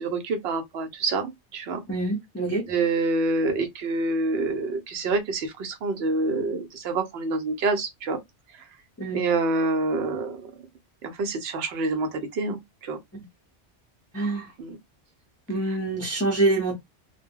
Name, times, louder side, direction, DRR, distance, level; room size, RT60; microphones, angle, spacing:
voice 1, 0.0-1.8 2.7-8.2 9.1-10.5 11.0-13.0 14.6-14.8, right 3 dB, 65° right, 0.9 m, -27 dB
voice 2, 1.9-2.6 9.0-9.2 13.1-13.2 14.1-14.5 15.5-16.7, right 2 dB, 15° left, 0.8 m, -26 dB
2.1 x 2.1 x 3.5 m
omnidirectional pair, 1.2 m